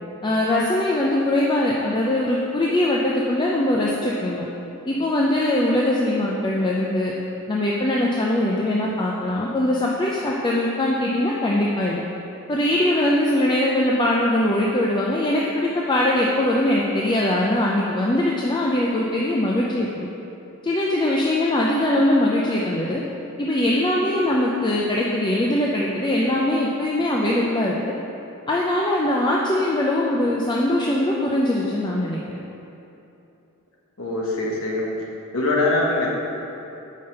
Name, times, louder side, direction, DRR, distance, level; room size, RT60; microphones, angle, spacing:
voice 1, 0.2-4.4 4.9-7.1 7.5-12.0 12.5-20.1 20.6-23.0 23.4-27.8 28.5-32.4, left 1 dB, 20° left, -3 dB, 0.5 m, -21 dB
voice 2, 34.0-34.9 35.3-36.2, left 2 dB, 70° left, -3 dB, 1.4 m, -22 dB
5.6 x 5.2 x 6.6 m, 2.8 s
head